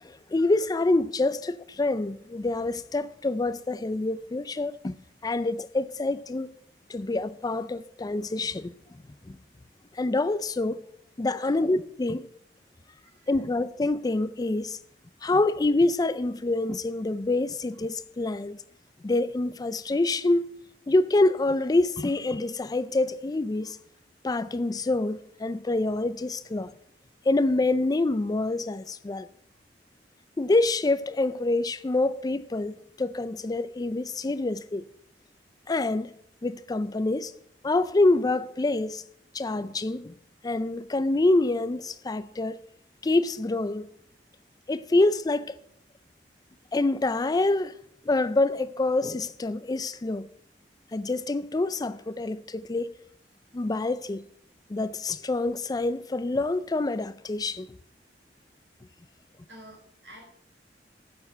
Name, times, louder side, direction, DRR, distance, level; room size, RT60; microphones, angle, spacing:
voice 1, 0.0-4.9 5.2-6.5 6.9-8.7 9.2-9.4 9.9-10.8 11.2-12.3 13.3-14.8 15.2-18.6 19.0-20.5 20.9-23.8 24.2-26.7 27.3-29.3 30.4-34.8 35.7-36.1 36.4-37.3 37.6-39.0 39.3-40.1 40.4-42.6 43.0-43.9 44.7-45.6 46.7-47.7 48.1-50.3 50.9-53.0 53.5-54.2 54.7-57.7, left 2 dB, 20° left, 0.4 m, -26 dB
voice 2, 11.4-11.7 13.0-13.4 59.5-60.3, right 1 dB, 75° right, 5.6 m, -49 dB
9.6 x 7.0 x 7.6 m
head